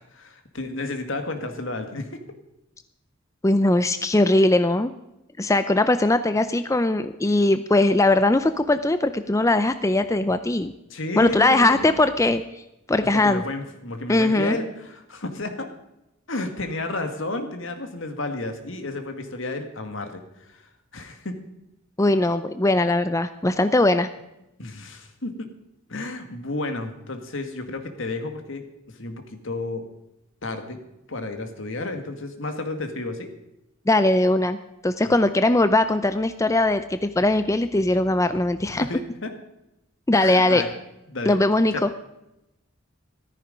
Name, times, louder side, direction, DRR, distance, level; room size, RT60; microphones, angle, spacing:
voice 1, 0.0-2.2 10.9-11.9 13.1-15.7 16.3-21.4 24.6-25.5 25.9-29.8 30.4-30.8 31.1-33.3 35.0-35.2 38.8-39.3 40.2-40.8 41.1-41.4 41.7-41.8, left 2 dB, 70° left, 6 dB, 2.0 m, -32 dB
voice 2, 3.4-4.9 5.4-10.7 11.2-12.4 12.9-13.4 14.1-14.6 22.0-24.1 33.9-34.6 34.8-38.9 40.1-40.6 41.3-41.9, left 2 dB, 15° left, 11 dB, 0.5 m, -20 dB
14.5 x 13.5 x 5.2 m, 0.89 s
head